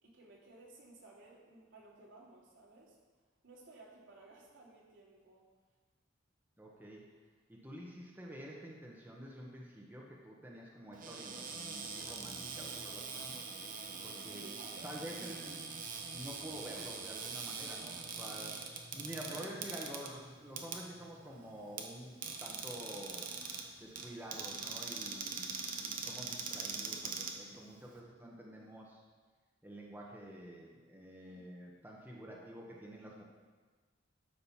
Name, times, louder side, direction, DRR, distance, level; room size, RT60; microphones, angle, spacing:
voice 1, 0.0-3.0 3.4-5.5 14.1-15.3 18.9-19.5 31.2-31.4, right 2 dB, 85° right, -4 dB, 3.0 m, -57 dB
voice 2, 6.6-7.0 7.5-13.4 14.0-14.5 14.8-15.6 16.1-23.3 23.8-25.5 25.8-29.0 29.6-33.2, equal, 10° right, -3 dB, 1.4 m, -48 dB
Cupboard open or close, 10.9-28.0, right 5 dB, 45° right, 1.1 m, -43 dB
13.0 x 5.3 x 5.8 m, 1.4 s
head